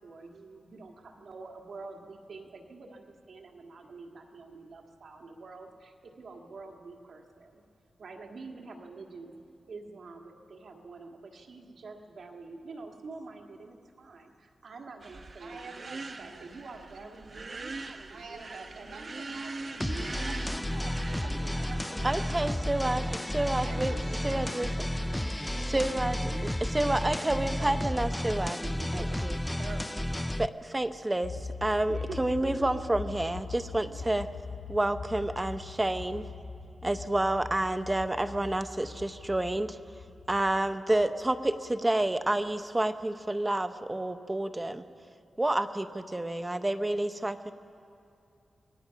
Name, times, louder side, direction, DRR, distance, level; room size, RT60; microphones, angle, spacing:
voice 1, 0.0-7.6 8.0-9.3 9.7-19.3 19.8-20.6 21.2-25.8 26.1-26.4 26.8-28.2 28.5-30.1 31.9-32.7 33.9-34.3, right 3 dB, 70° right, 2 dB, 1.8 m, -47 dB
sound 1, 15.0-22.5, right 3 dB, 45° right, 0.9 m, -43 dB
voice 2, 15.4-16.6 16.9-17.0 18.1-19.7 20.1-22.6 23.5-24.8, right 3 dB, 90° right, 1 dB, 2.5 m, -46 dB
sound 2, 19.8-30.5, left 1 dB, 10° left, 0.4 m, -32 dB
voice 3, 22.0-23.0 23.3-23.9 24.2-24.7 25.7-28.6 28.9-29.4 30.4-34.3 34.7-36.3 36.8-39.8 40.3-44.8 45.4-47.5, right 1 dB, 20° right, 9 dB, 0.8 m, -29 dB
sound 3, 31.2-42.5, left 5 dB, 60° left, 0.8 m, -42 dB
25.0 x 18.5 x 5.8 m, 2.5 s
wide cardioid pair, 90°, 0 cm